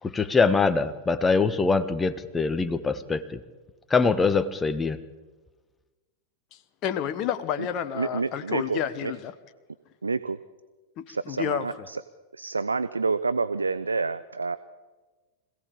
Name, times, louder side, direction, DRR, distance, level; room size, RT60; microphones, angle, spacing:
voice 1, 0.0-3.4 3.9-5.0, left 4 dB, 15° left, 12 dB, 1.3 m, -23 dB
voice 2, 6.5-9.3 11.0-11.9, left 9 dB, 35° left, 10 dB, 1.3 m, -30 dB
voice 3, 8.0-9.1 10.0-10.4 11.1-12.0 12.3-14.6, right 4 dB, 75° right, 14 dB, 0.6 m, -28 dB
25.5 x 17.0 x 8.6 m, 1.3 s
figure-of-eight pair, 90°, 0 cm